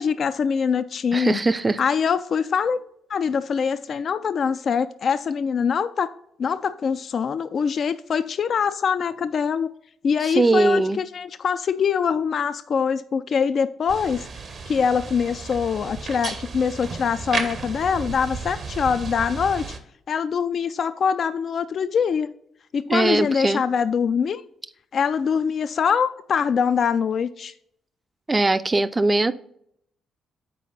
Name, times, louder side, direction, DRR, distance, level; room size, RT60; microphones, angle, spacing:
voice 1, 0.0-1.4 1.8-2.8 3.1-6.1 6.4-9.7 10.0-14.3 14.7-19.7 20.1-22.3 22.7-24.4 24.9-27.5, left 6 dB, 50° left, 0.3 m, -23 dB
voice 2, 1.1-1.8 10.2-11.0 22.9-23.6 28.3-29.3, right 2 dB, 25° right, 0.5 m, -20 dB
sound 1, 13.9-19.8, right 4 dB, 50° right, 0.9 m, -33 dB
7.6 x 4.9 x 4.0 m
figure-of-eight pair, 40°, 0 cm